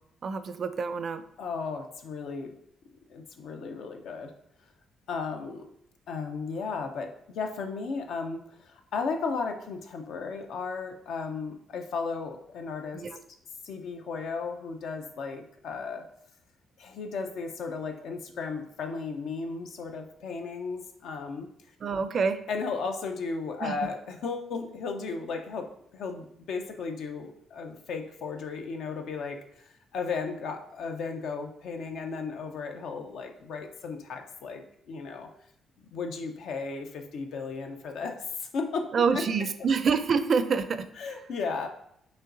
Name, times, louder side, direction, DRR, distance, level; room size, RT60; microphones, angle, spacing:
voice 1, 0.2-1.2 12.9-13.2 21.8-22.4 23.6-23.7 38.9-40.9, right 5 dB, 50° right, 11 dB, 0.4 m, -26 dB
voice 2, 1.4-2.5 3.1-4.3 5.1-5.7 6.1-13.0 13.6-16.0 16.8-21.5 22.5-25.7 25.9-35.3 35.9-38.9 39.1-39.2 41.0-41.7, left 4 dB, 75° left, 4 dB, 0.6 m, -35 dB
5.6 x 3.1 x 2.6 m, 0.75 s
cardioid pair, 90°, 0 cm